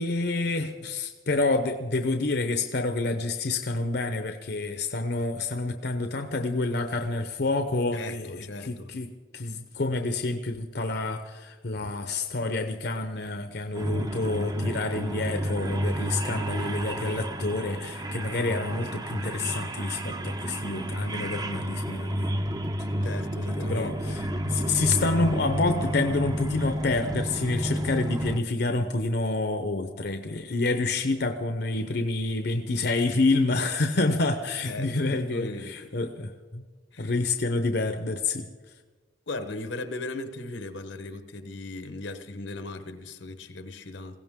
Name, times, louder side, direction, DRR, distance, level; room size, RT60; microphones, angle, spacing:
voice 1, 0.0-22.3 23.5-36.6 37.0-38.5, left 2 dB, 60° left, 0.8 m, -28 dB
voice 2, 7.9-8.9 23.0-24.2 34.6-35.9 36.9-37.1 39.3-44.2, left 2 dB, 80° left, 1.1 m, -37 dB
sound 1, 13.7-28.4, equal, 20° right, 0.7 m, -31 dB
21.0 x 16.5 x 3.7 m
head